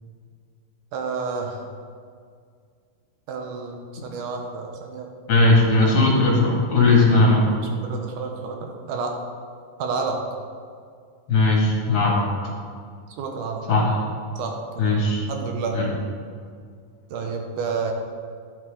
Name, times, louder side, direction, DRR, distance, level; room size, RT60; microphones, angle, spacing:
voice 1, 0.9-1.6 3.3-5.1 5.8-6.0 7.5-9.2 9.8-10.2 13.1-13.6 14.4-15.0 15.3-15.8 17.1-17.9, right 5 dB, 70° right, 2 dB, 2.1 m, -30 dB
voice 2, 5.3-7.4 11.3-12.2 13.7-13.9 14.8-15.3 15.7-15.8, left 2 dB, 45° left, -3 dB, 2.6 m, -18 dB
11.5 x 7.8 x 3.8 m, 2.1 s
omnidirectional pair, 4.3 m